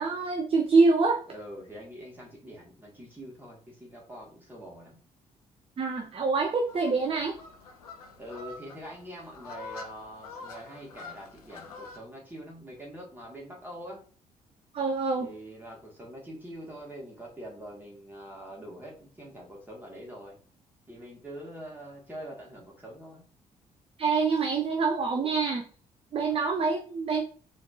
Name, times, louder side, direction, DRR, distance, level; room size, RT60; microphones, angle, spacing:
voice 1, 0.0-1.2 5.8-7.4 14.7-15.3 24.0-25.7 26.1-27.2, right 4 dB, 30° right, 4 dB, 0.6 m, -25 dB
voice 2, 1.3-5.0 8.2-14.1 15.2-20.4 20.9-23.2 26.2-26.4, equal, 10° right, -3 dB, 2.0 m, -44 dB
sound 1, 6.7-12.0, left 3 dB, 80° left, 0.5 m, -46 dB
4.0 x 3.2 x 2.7 m, 0.42 s
figure-of-eight pair, 40°, 19 cm